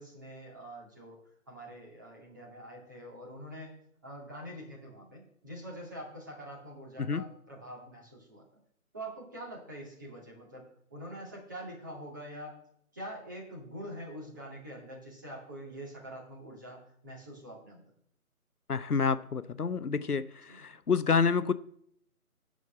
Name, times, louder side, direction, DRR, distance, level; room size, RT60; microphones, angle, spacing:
voice 1, 0.0-3.7 4.0-8.4 8.9-12.6 12.9-17.8 20.5-20.6, right 1 dB, 15° right, -4 dB, 2.3 m, -45 dB
voice 2, 18.7-21.5, left 5 dB, 85° left, 14 dB, 0.9 m, -28 dB
9.4 x 6.3 x 7.7 m, 0.69 s
figure-of-eight pair, 170°, 44 cm